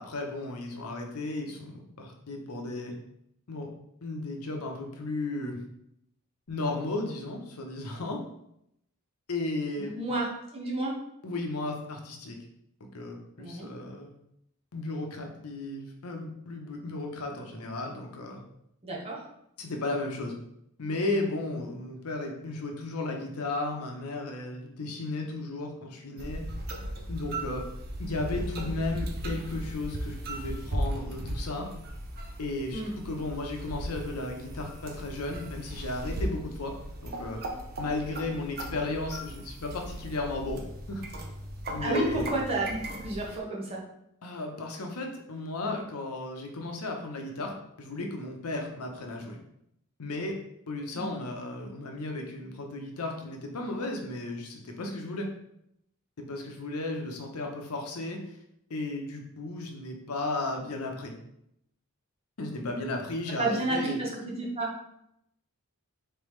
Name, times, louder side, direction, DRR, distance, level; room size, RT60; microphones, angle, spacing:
voice 1, 0.0-2.9 3.5-3.7 4.0-5.6 6.5-8.2 9.3-9.9 11.2-12.4 12.9-14.1 14.7-18.4 19.6-20.4 20.8-26.5 27.1-27.6 28.0-31.7 32.4-36.7 37.0-37.4 37.8-40.6 40.9-41.0 41.7-42.3 44.2-47.5 47.8-49.4 50.0-50.4 50.7-55.3 56.2-58.4 58.7-61.1 62.4-64.0, left 2 dB, 80° left, 2 dB, 0.8 m, -34 dB
voice 2, 9.8-10.2 10.5-10.9 13.4-13.7 18.8-19.2 32.7-32.9 41.8-43.8 50.9-51.1 63.4-64.1 64.4-64.7, right 2 dB, 25° right, -3 dB, 1.0 m, -31 dB
sound 1, 26.2-43.4, right 1 dB, 45° right, 0.6 m, -37 dB
4.1 x 3.4 x 3.2 m, 0.77 s
head